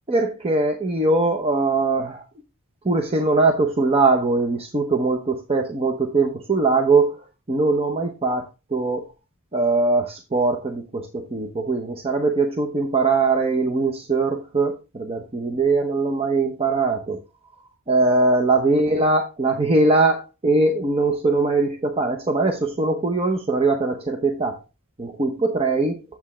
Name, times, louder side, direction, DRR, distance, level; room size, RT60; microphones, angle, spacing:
voice 1, 0.1-2.2 2.8-7.2 7.5-8.4 8.7-9.0 9.5-17.2 17.9-24.6 25.0-26.0, right 3 dB, 25° right, 3 dB, 0.8 m, -21 dB
8.1 x 7.2 x 3.2 m, 0.27 s
head